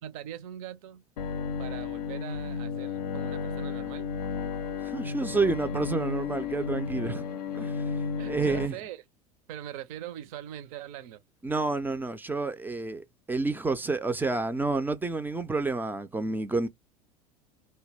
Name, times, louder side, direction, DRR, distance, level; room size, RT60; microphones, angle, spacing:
voice 1, 0.0-1.0 1.6-4.1 8.2-9.0 9.5-11.2, right 11 dB, 60° right, 0.5 m, -41 dB
Bowed string instrument, 1.2-8.7, left 6 dB, 75° left, 0.4 m, -33 dB
voice 2, 4.8-7.2 7.5-7.9 8.3-8.7 11.4-16.7, right 3 dB, 10° right, 0.3 m, -29 dB
2.2 x 2.1 x 3.2 m
figure-of-eight pair, 75°, 20 cm